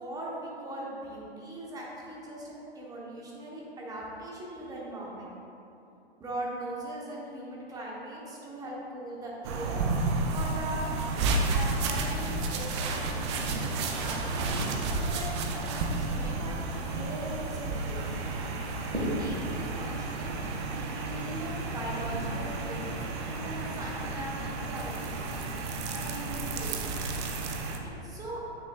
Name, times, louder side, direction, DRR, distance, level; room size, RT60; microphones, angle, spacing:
voice 1, 0.0-5.3 6.2-9.9 10.2-10.8 11.1-11.2 11.5-14.7 14.9-15.3 15.5-18.2 18.9-22.9 23.3-25.2 25.9-26.8 28.0-28.4, right 1 dB, 10° right, -4 dB, 1.0 m, -40 dB
sound 1, 9.4-27.8, right 3 dB, 25° right, 0.5 m, -32 dB
Wind, 13.1-25.4, equal, 90° right, 1.6 m, -40 dB
9.5 x 6.1 x 2.4 m, 2.9 s
figure-of-eight pair, 120°, 32 cm